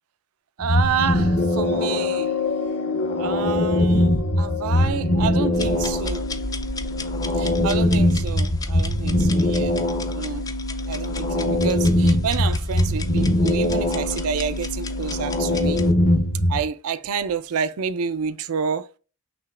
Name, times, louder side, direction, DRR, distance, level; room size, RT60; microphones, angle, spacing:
sound 1, 0.6-16.7, left 1 dB, 40° left, 0.7 m, -22 dB
voice 1, 0.6-2.3 3.2-6.3 7.4-9.8 10.1-10.5 10.9-15.8 16.5-18.9, right 6 dB, 75° right, 0.4 m, -28 dB
sound 2, 0.9-7.6 8.2-8.3, left 6 dB, 85° left, 0.7 m, -31 dB
sound 3, 5.5-15.9, left 1 dB, 15° left, 0.3 m, -32 dB
5.8 x 2.9 x 2.4 m
head